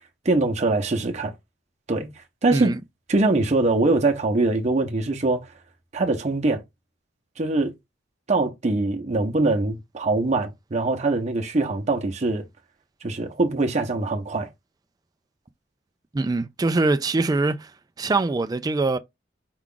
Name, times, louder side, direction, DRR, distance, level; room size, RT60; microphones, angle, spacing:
voice 1, 0.2-1.3 1.9-2.1 2.4-2.7 3.1-5.5 5.9-6.6 7.4-7.7 8.3-12.4 13.0-14.5, right 2 dB, 35° right, 0.7 m, -23 dB
voice 2, 16.1-17.7 18.0-19.0, right 3 dB, 20° right, 0.3 m, -23 dB
4.6 x 2.4 x 3.7 m
head